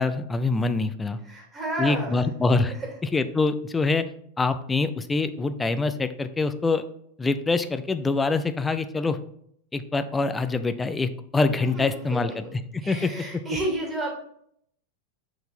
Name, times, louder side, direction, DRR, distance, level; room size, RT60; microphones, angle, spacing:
voice 1, 0.0-1.2 1.8-2.7 3.0-4.1 4.4-6.8 7.2-9.2 9.7-13.1, left 3 dB, 10° left, 10 dB, 0.5 m, -25 dB
voice 2, 1.2-2.2 2.8-2.9 11.6-12.4 12.8-14.1, right 1 dB, 20° right, 0 dB, 2.4 m, -31 dB
6.9 x 3.9 x 4.2 m, 0.69 s
figure-of-eight pair, 90°, 0 cm